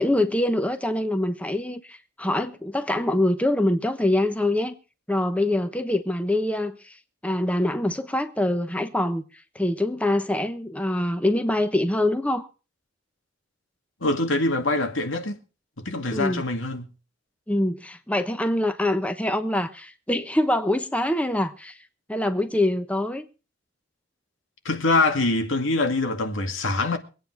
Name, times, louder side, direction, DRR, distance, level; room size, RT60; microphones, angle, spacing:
voice 1, 0.0-4.8 5.1-6.9 7.2-9.2 9.5-12.5 16.1-16.4 17.5-21.7 22.1-23.2, left 1 dB, 5° left, 1.0 m, -24 dB
voice 2, 14.0-15.4 15.8-16.9 24.6-27.0, left 2 dB, 90° left, 2.2 m, -24 dB
23.5 x 8.9 x 4.6 m
head